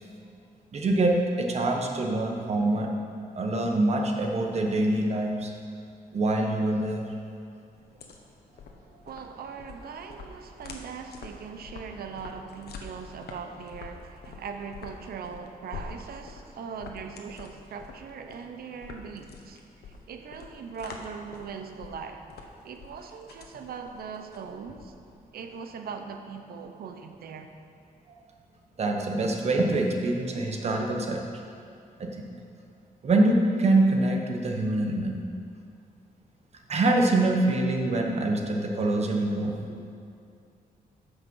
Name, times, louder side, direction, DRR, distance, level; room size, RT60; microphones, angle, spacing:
voice 1, 0.7-2.9 3.3-5.5 6.1-7.0 28.8-31.2 32.0-32.3 33.0-35.2 36.7-39.7, right 2 dB, 40° right, 2 dB, 1.2 m, -25 dB
sound 1, 7.7-25.2, left 4 dB, 85° left, 1.2 m, -46 dB
voice 2, 9.0-19.6 20.1-22.2 22.6-24.9 25.3-27.5, right 6 dB, 75° right, 6 dB, 0.9 m, -40 dB
14.0 x 5.9 x 5.5 m, 2.5 s
wide cardioid pair, 160°, 16 cm